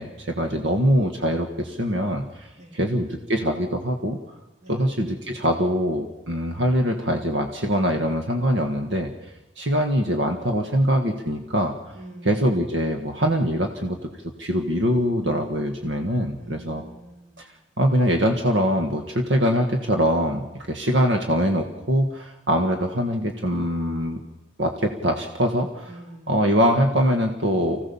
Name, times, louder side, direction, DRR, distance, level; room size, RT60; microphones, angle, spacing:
voice 1, 0.0-2.5 2.7-4.2 4.7-9.1 9.6-11.7 12.2-14.0 14.4-16.8 17.4-17.5 17.8-24.2 24.6-25.9 26.3-27.8, equal, 70° right, 4 dB, 1.6 m, -23 dB
voice 2, 11.9-12.5 16.4-17.6 25.9-26.6, right 1 dB, 35° right, 3 dB, 3.0 m, -45 dB
25.0 x 16.0 x 7.1 m, 0.97 s
head